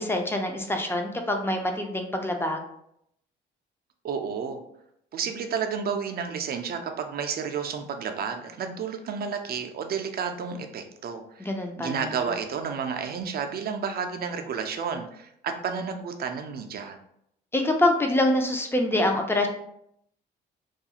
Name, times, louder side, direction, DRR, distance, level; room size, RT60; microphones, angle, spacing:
voice 1, 0.0-2.6 11.4-12.1 17.5-19.5, left 1 dB, 10° left, 3 dB, 0.4 m, -25 dB
voice 2, 4.0-4.6 5.1-11.5 11.8-17.0, right 6 dB, 50° right, 6 dB, 0.4 m, -31 dB
2.4 x 2.3 x 2.8 m, 0.73 s
cardioid pair, 90°, 20 cm